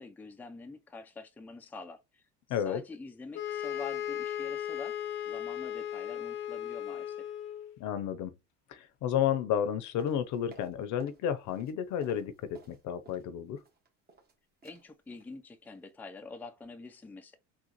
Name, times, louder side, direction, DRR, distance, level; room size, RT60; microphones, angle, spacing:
voice 1, 0.0-2.2 2.5-5.0 5.3-7.3 14.6-17.4, left 3 dB, 5° left, 0.5 m, -46 dB
voice 2, 2.5-2.8 7.8-8.3 8.7-13.6, left 9 dB, 60° left, 0.7 m, -32 dB
sound 1, 3.3-7.7, left 10 dB, 90° left, 0.8 m, -36 dB
sound 2, 10.0-11.2 11.5-13.3 13.6-14.3 14.6-14.8 15.1-15.3 15.6-15.9 16.2-16.3, right 3 dB, 25° right, 1.4 m, -56 dB
3.7 x 2.4 x 2.9 m
supercardioid pair, 85°, 34 cm